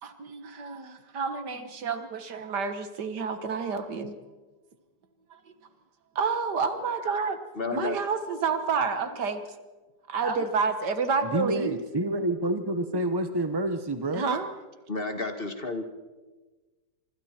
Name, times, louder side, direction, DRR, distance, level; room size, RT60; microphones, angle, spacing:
voice 1, 0.0-4.2 5.3-5.4 6.2-7.4 7.7-9.4 10.1-11.8 14.1-14.5, right 5 dB, 65° right, 9 dB, 2.0 m, -29 dB
voice 2, 7.6-8.0 14.9-15.8, left 3 dB, 30° left, 6 dB, 1.7 m, -31 dB
voice 3, 11.2-14.3, right 1 dB, 25° right, 8 dB, 0.5 m, -28 dB
26.0 x 25.0 x 4.4 m, 1.2 s
omnidirectional pair, 2.0 m